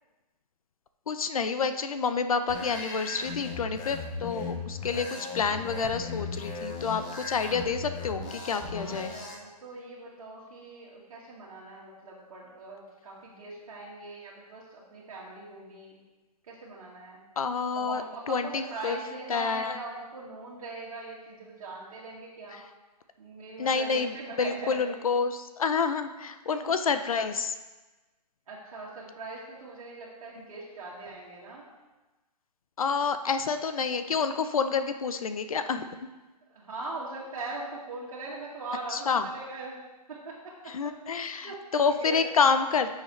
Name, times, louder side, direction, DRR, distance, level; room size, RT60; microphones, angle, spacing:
voice 1, 1.1-5.1 5.3-9.1 17.4-19.0 19.3-19.8 22.5-22.6 23.6-24.1 24.4-27.5 32.8-35.9 38.9-39.3 40.7-42.9, left 5 dB, 55° left, 10 dB, 0.6 m, -28 dB
sound 1, 2.5-9.3, left 4 dB, 10° left, 0.6 m, -37 dB
voice 2, 4.8-5.2 8.7-16.0 16.4-17.2 17.7-22.6 23.2-25.0 26.4-26.7 28.5-31.7 36.5-39.8 40.1-40.5 41.2-42.2 42.5-42.6, right 3 dB, 55° right, -6 dB, 1.9 m, -41 dB
11.5 x 6.5 x 3.2 m, 1.2 s
hypercardioid pair, 170°, 21 cm